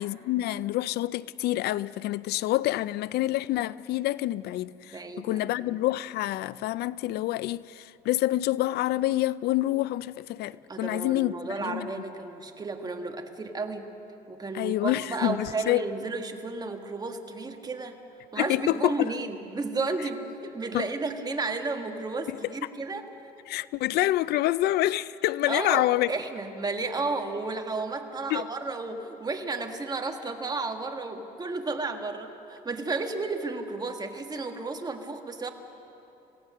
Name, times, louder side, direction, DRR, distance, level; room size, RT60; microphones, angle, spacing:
voice 1, 0.0-11.4 11.6-11.9 14.5-15.8 18.4-19.1 20.7-20.9 22.3-22.5 23.5-26.1 28.3-28.4, left 16 dB, 75° left, 19 dB, 0.4 m, -27 dB
voice 2, 4.9-5.4 10.7-13.9 14.3-17.9 18.3-23.0 25.5-35.5, right 3 dB, 25° right, 5 dB, 1.6 m, -33 dB
27.0 x 16.5 x 6.6 m, 3.0 s
cardioid pair, 110°, 17 cm